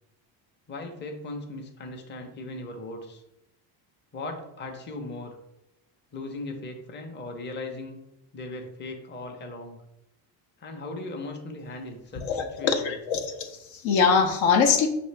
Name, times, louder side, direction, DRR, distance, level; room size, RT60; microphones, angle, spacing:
voice 1, 0.7-3.2 4.1-5.4 6.1-8.0 8.3-9.8 10.6-13.0, left 2 dB, 25° left, 3 dB, 0.7 m, -38 dB
voice 2, 12.2-14.9, left 6 dB, 75° left, 5 dB, 0.8 m, -23 dB
5.2 x 2.9 x 3.3 m, 0.85 s
cardioid pair, 105°, 47 cm